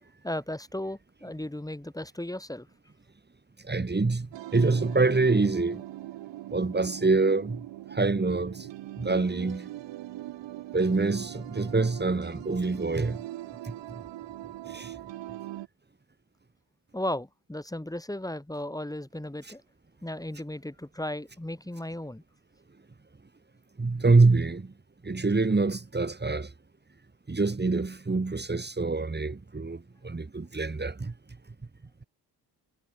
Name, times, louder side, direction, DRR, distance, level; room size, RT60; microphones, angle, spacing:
voice 1, 0.2-2.7 16.9-19.6 20.0-22.2, left 1 dB, 10° left, 6.8 m, -35 dB
voice 2, 3.6-4.3 4.5-5.8 6.5-7.6 7.9-8.7 9.0-9.7 10.7-13.2 13.6-13.7 14.7-14.9 23.8-24.7 25.0-26.5 27.3-31.1, right 3 dB, 25° right, 5.8 m, -25 dB
sound 1, 4.3-15.7, right 15 dB, 80° right, 3.1 m, -41 dB
cardioid pair, 75°, 43 cm